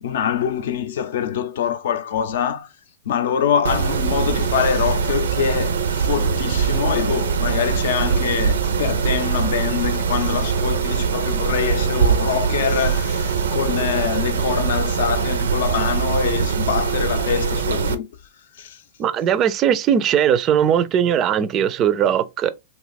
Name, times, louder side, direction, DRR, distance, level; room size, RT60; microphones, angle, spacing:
voice 1, 0.0-2.7 3.1-18.1 18.6-18.8, left 8 dB, 70° left, 0.5 m, -24 dB
Mechanisms, 3.6-17.9, right 6 dB, 85° right, 0.5 m, -22 dB
voice 2, 19.0-22.5, right 9 dB, 30° right, 0.4 m, -19 dB
2.7 x 2.3 x 4.0 m
hypercardioid pair, 120°, 0 cm